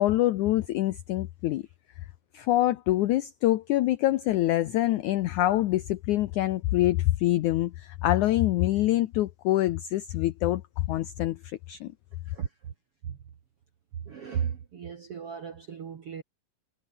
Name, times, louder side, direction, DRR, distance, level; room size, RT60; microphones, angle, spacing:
voice 1, 0.0-1.6 2.3-11.9, left 15 dB, 85° left, 1.7 m, -25 dB
voice 2, 14.1-16.2, right 8 dB, 50° right, 2.1 m, -35 dB
omnidirectional pair, 4.5 m